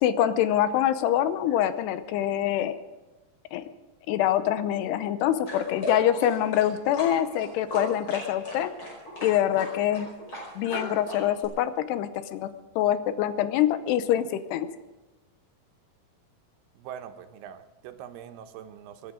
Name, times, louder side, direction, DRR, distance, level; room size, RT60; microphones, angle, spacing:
voice 1, 0.0-2.7 3.5-3.7 4.1-8.7 9.2-10.1 10.6-12.5 12.8-14.7, left 11 dB, 90° left, 12 dB, 2.9 m, -25 dB
sound 1, 5.5-11.5, left 1 dB, 30° left, 6.0 m, -37 dB
voice 2, 16.7-19.1, right 9 dB, 80° right, 8 dB, 2.9 m, -43 dB
26.5 x 11.0 x 5.0 m, 1.1 s
omnidirectional pair, 4.6 m